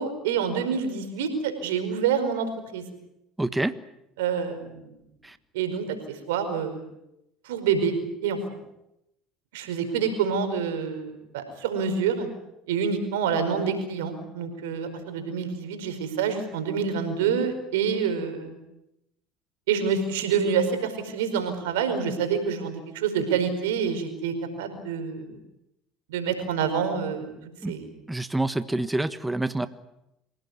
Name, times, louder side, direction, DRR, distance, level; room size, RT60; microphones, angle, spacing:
voice 1, 0.0-2.8 4.2-4.9 5.5-5.9 6.3-6.8 7.4-7.9 8.2-8.4 9.5-12.3 12.7-18.6 19.7-25.4 26.1-27.3 27.7-27.9, right 6 dB, 85° right, 8 dB, 5.0 m, -27 dB
voice 2, 3.4-3.7 5.2-5.4 27.6-27.7 28.1-29.7, right 2 dB, 10° right, 11 dB, 1.4 m, -27 dB
27.0 x 17.5 x 9.6 m, 0.87 s
hypercardioid pair, 80°, 0 cm